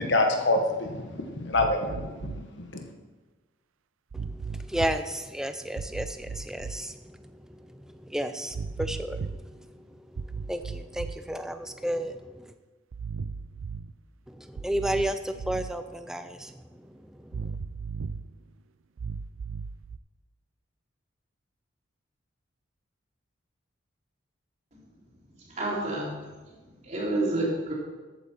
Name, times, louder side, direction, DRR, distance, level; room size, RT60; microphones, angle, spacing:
voice 1, 0.0-2.8, left 2 dB, 60° left, 4 dB, 1.4 m, -27 dB
sound 1, 1.5-2.4 4.1-5.0 5.8-6.8 8.5-9.4 10.2-11.4 12.9-13.9 14.6-15.8 17.3-18.3 19.0-20.0, right 5 dB, 80° right, 0.5 m, -36 dB
voice 2, 4.1-12.5 14.3-17.4, right 1 dB, 5° right, 8 dB, 0.5 m, -33 dB
voice 3, 25.5-26.2 26.8-27.7, right 2 dB, 35° right, -4 dB, 3.2 m, -28 dB
13.5 x 8.5 x 4.5 m, 1.3 s
head